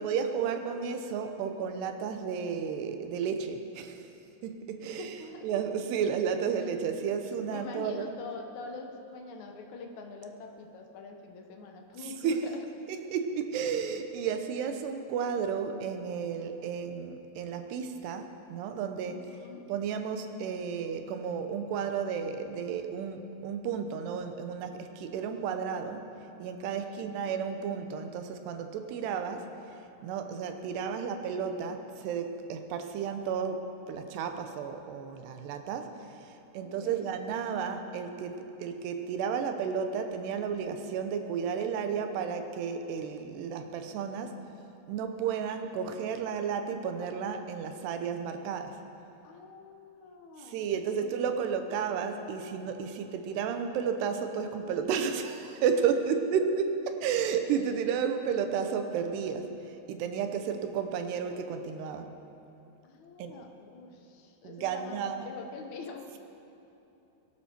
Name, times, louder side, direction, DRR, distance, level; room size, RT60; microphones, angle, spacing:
voice 1, 0.0-4.0 4.4-5.1 5.4-8.1 12.2-12.4 13.1-19.3 19.7-26.0 26.4-29.5 30.0-35.9 36.5-44.3 44.9-48.8 50.4-59.5 59.9-62.1 63.2-63.4 64.4-65.2, right 7 dB, 80° right, 7 dB, 3.0 m, -32 dB
voice 2, 4.8-5.5 7.5-12.6 19.0-19.7 26.6-27.0 36.6-37.1 49.2-50.6 50.9-51.0 51.4-51.5 62.8-66.1, left 4 dB, 70° left, 3 dB, 1.8 m, -45 dB
22.0 x 12.0 x 4.5 m, 2.9 s
omnidirectional pair, 4.8 m